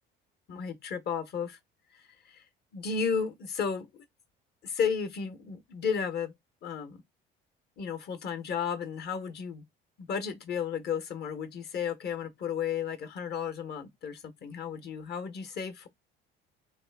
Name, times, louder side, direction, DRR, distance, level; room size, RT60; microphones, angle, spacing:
voice 1, 0.5-1.6 1.9-2.4 2.7-3.9 4.6-6.3 6.6-7.0 7.8-9.6 10.0-15.9, left 6 dB, 50° left, 1.2 m, -33 dB
3.5 x 3.3 x 3.5 m
cardioid pair, 110°, 21 cm